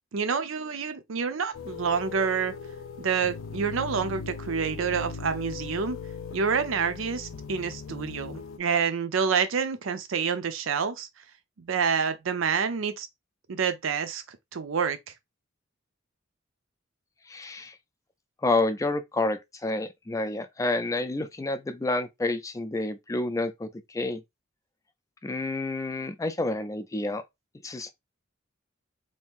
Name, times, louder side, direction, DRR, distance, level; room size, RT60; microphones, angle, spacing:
voice 1, 0.1-2.5 3.0-6.0 6.3-11.1 11.6-13.1 13.5-15.0, right 6 dB, 90° right, 0.5 m, -28 dB
sound 1, 1.5-8.6, left 5 dB, 75° left, 0.5 m, -39 dB
voice 2, 17.3-17.7 18.4-24.2 25.2-27.2 27.6-27.9, left 2 dB, 15° left, 0.4 m, -29 dB
2.8 x 2.5 x 3.6 m
head